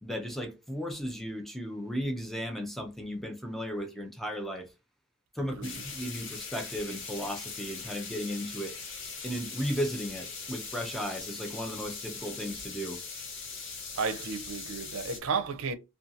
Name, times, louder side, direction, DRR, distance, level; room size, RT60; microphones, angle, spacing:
voice 1, 0.0-4.7 5.4-8.7 9.2-13.0, equal, ahead, 0.4 m, -35 dB
sound 1, 5.6-15.2, left 5 dB, 60° left, 0.8 m, -41 dB
voice 2, 14.0-15.7, right 5 dB, 75° right, 0.5 m, -33 dB
2.6 x 2.3 x 2.6 m
head